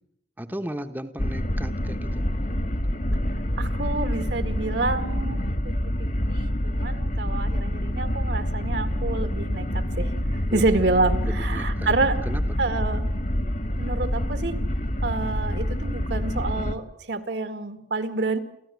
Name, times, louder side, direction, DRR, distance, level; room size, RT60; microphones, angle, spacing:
voice 1, 0.4-2.3 10.5-10.6 11.3-11.9 12.2-12.4, right 1 dB, 10° right, 6 dB, 0.9 m, -35 dB
sound 1, 1.2-16.8, equal, 45° left, 1.6 m, -27 dB
voice 2, 3.6-5.7 6.3-9.7 10.0-12.2 12.6-13.0 13.8-14.6 15.0-18.4, right 3 dB, 75° right, 9 dB, 2.0 m, -28 dB
29.0 x 14.5 x 9.3 m, 0.80 s
head